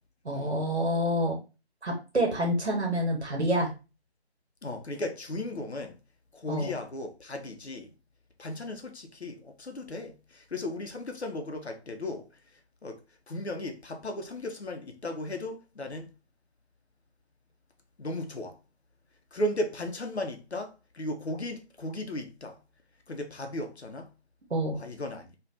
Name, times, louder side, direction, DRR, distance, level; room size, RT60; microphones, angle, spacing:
voice 1, 0.2-1.4 1.8-3.7 6.5-6.7 24.5-24.8, equal, 80° right, 0.9 m, -27 dB
voice 2, 4.6-6.0 6.3-7.9 8.4-12.3 12.8-13.0 13.3-16.1 18.0-18.6 19.3-22.6 23.1-24.1 24.7-25.3, left 1 dB, 75° left, 0.8 m, -36 dB
3.2 x 2.4 x 2.4 m
figure-of-eight pair, 160°, 33 cm